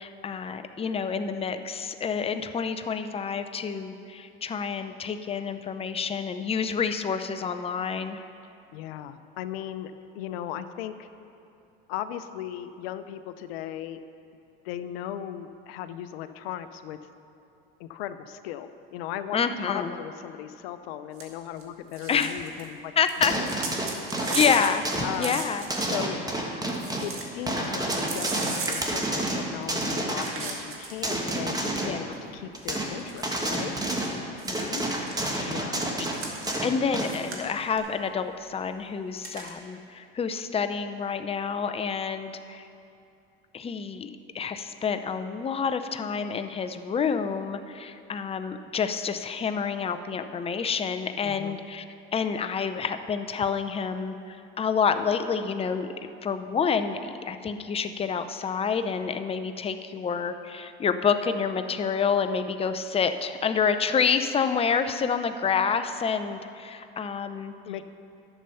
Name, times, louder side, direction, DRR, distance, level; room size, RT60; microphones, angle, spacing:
voice 1, 0.0-8.2 19.3-19.9 22.1-22.4 23.0-23.3 24.3-24.8 25.2-25.6 31.8-32.0 34.4-34.8 35.2-35.6 36.6-42.7 43.5-51.8 52.1-55.9 56.2-67.5, left 6 dB, 20° left, 9 dB, 0.5 m, -28 dB
voice 2, 8.7-11.1 11.9-14.0 14.6-17.0 17.8-22.9 23.2-23.5 24.1-24.4 25.0-25.4 25.9-26.2 27.0-33.7 35.4-35.8 51.2-51.6 67.7-67.8, left 11 dB, 80° left, 11 dB, 0.6 m, -37 dB
sound 1, 21.2-21.3 21.6-21.7 21.9-22.7 23.0-26.1 26.4-26.5 26.7-27.3 27.6-29.6 30.2-31.4 32.1-32.2 32.7-34.1 34.4-35.2 36.0-36.6 37.0-37.7 39.2-39.5, right 4 dB, 45° right, 1.9 m, -36 dB
sound 2, 23.2-25.2 25.7-27.2 27.5-30.4 31.0-32.0 32.5-33.0 33.2-34.2 34.5-37.2 37.8-37.9, right 1 dB, 10° right, 1.5 m, -30 dB
11.0 x 6.8 x 5.7 m, 2.7 s
supercardioid pair, 90°, 30 cm